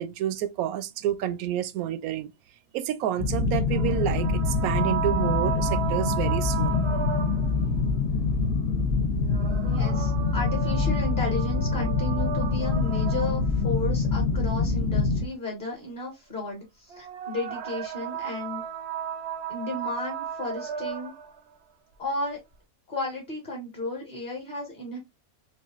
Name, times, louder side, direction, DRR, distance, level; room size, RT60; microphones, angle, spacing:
voice 1, 0.0-2.3 2.7-6.8, right 11 dB, 80° right, 1.0 m, -29 dB
sound 1, 3.2-15.3, left 4 dB, 55° left, 1.0 m, -25 dB
sound 2, 3.7-7.7 9.2-13.7 16.9-21.4, right 8 dB, 60° right, 0.7 m, -34 dB
voice 2, 9.6-18.6 19.5-21.1 22.0-22.4 22.9-25.0, left 2 dB, 35° left, 1.4 m, -33 dB
5.5 x 2.4 x 2.4 m
omnidirectional pair, 1.5 m